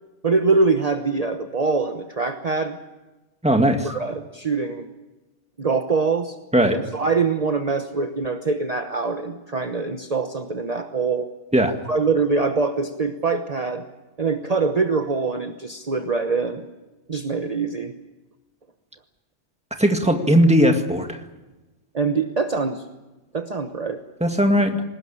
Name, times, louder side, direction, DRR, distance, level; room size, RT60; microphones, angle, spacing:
voice 1, 0.2-2.8 3.8-4.9 5.6-6.4 6.7-11.3 11.9-13.9 14.2-16.6 17.1-17.9 21.9-22.8 23.3-24.0, right 4 dB, 35° right, 6 dB, 1.1 m, -23 dB
voice 2, 3.4-3.9 6.5-6.9 11.5-11.8 19.8-21.2 24.2-24.8, equal, 5° right, 5 dB, 1.9 m, -18 dB
21.5 x 19.0 x 8.8 m, 1.1 s
omnidirectional pair, 1.2 m